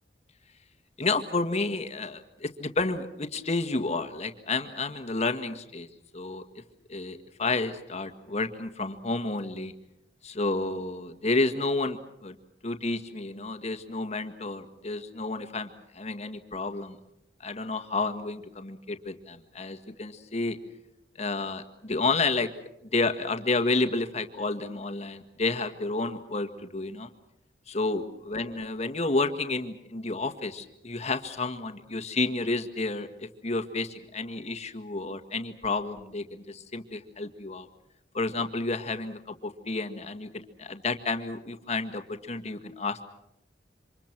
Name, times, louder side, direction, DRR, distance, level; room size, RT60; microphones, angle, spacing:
voice 1, 1.0-5.9 6.1-6.4 6.9-9.7 10.2-12.4 12.6-17.0 17.4-20.6 21.2-22.5 22.9-27.1 27.7-37.7 38.1-43.1, left 3 dB, 40° left, 7 dB, 1.8 m, -30 dB
28.0 x 26.0 x 6.1 m, 0.83 s
head